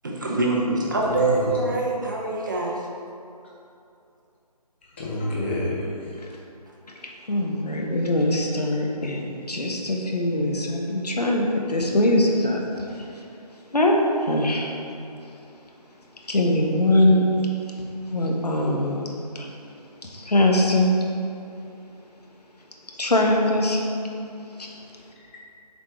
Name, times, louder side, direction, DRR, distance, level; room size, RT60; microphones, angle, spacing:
voice 1, 0.0-2.8, right 3 dB, 30° right, -2 dB, 0.8 m, -24 dB
voice 2, 1.0-1.5 5.0-6.2 25.2-25.4, left 1 dB, 15° left, -6 dB, 0.6 m, -28 dB
voice 3, 7.3-12.6 13.0-13.1 13.7-14.7 16.3-17.2 18.1-19.0 19.3-19.5 20.1-20.9 23.0-23.8 24.6-24.7, left 1 dB, 75° left, 0 dB, 1.2 m, -22 dB
7.2 x 4.3 x 4.4 m, 2.6 s
figure-of-eight pair, 155°, 21 cm